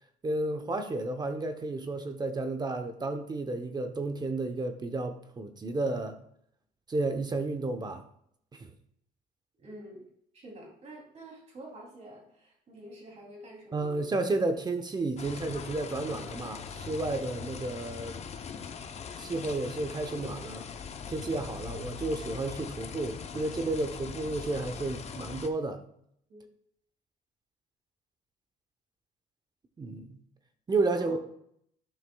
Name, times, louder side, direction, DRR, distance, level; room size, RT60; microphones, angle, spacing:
voice 1, 0.2-6.2 6.9-8.0 8.5-8.7 13.7-18.2 19.2-20.7 21.1-25.8 29.8-30.2 30.7-31.2, right 2 dB, 25° right, 8 dB, 0.8 m, -32 dB
voice 2, 9.6-10.0 10.3-14.1 26.3-26.5 30.9-31.2, right 1 dB, 40° right, -1 dB, 2.9 m, -48 dB
sound 1, 15.2-25.5, left 6 dB, 40° left, 0.7 m, -41 dB
11.0 x 5.8 x 2.3 m, 0.69 s
cardioid pair, 110°, 17 cm